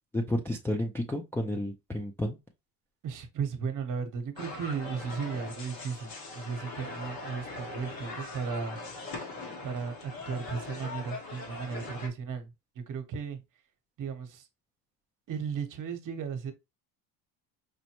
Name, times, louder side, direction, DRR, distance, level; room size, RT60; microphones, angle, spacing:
voice 1, 0.1-2.4, left 1 dB, 5° left, 0.4 m, -31 dB
voice 2, 3.0-8.8 9.6-12.5 12.7-13.4 14.0-14.4 15.3-16.5, right 6 dB, 45° right, 1.1 m, -35 dB
sound 1, 4.4-12.1, left 3 dB, 50° left, 1.5 m, -41 dB
5.2 x 2.1 x 2.9 m
cardioid pair, 120°, 45 cm